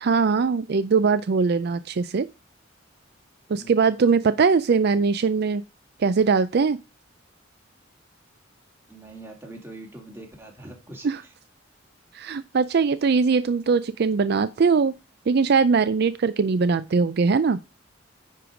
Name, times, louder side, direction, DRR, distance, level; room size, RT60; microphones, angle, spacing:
voice 1, 0.0-2.3 3.5-5.6 6.0-6.8 11.0-11.2 12.1-14.9 15.3-17.6, right 5 dB, 55° right, 0.4 m, -21 dB
voice 2, 8.9-11.3, right 2 dB, 10° right, 2.4 m, -43 dB
10.0 x 4.7 x 5.0 m
head